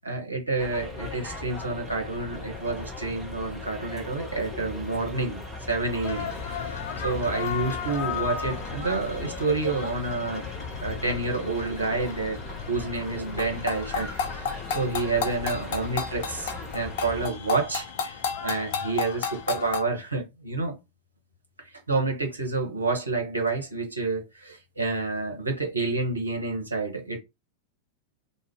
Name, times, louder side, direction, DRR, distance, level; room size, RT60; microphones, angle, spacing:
voice 1, 0.0-10.5 10.8-12.4 12.7-20.8 21.9-27.2, right 3 dB, 80° right, 0.8 m, -29 dB
sound 1, 0.6-17.3, left 2 dB, 5° left, 1.1 m, -39 dB
sound 2, 6.0-19.8, left 6 dB, 50° left, 0.5 m, -34 dB
2.4 x 2.1 x 3.5 m
figure-of-eight pair, 90°, 0 cm